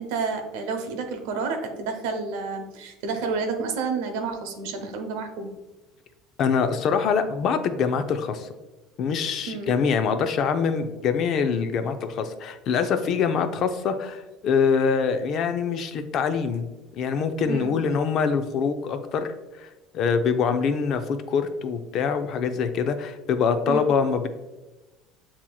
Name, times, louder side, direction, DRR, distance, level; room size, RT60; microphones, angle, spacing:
voice 1, 0.0-5.5 9.5-9.7 17.5-17.8 23.7-23.9, right 4 dB, 85° right, 5 dB, 0.7 m, -30 dB
voice 2, 6.4-8.5 9.0-16.7 17.0-19.7 19.9-24.3, left 6 dB, 45° left, 8 dB, 0.4 m, -24 dB
7.4 x 2.8 x 2.3 m, 1.1 s
cardioid pair, 145°, 0 cm